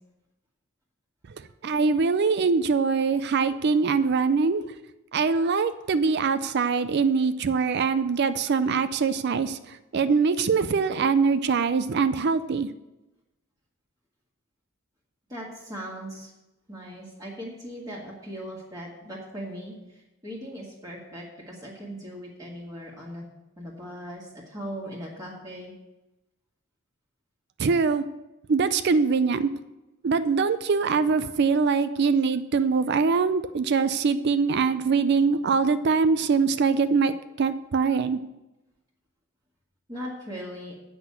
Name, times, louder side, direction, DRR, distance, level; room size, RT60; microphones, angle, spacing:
voice 1, 1.6-4.6 5.1-9.6 9.9-12.7 27.6-28.0 28.5-29.5 30.0-38.2, right 5 dB, 50° right, 12 dB, 0.4 m, -23 dB
voice 2, 15.3-16.3 16.7-23.3 23.6-25.7 39.9-40.7, equal, 15° right, -4 dB, 1.7 m, -39 dB
8.1 x 6.1 x 8.1 m, 0.99 s
head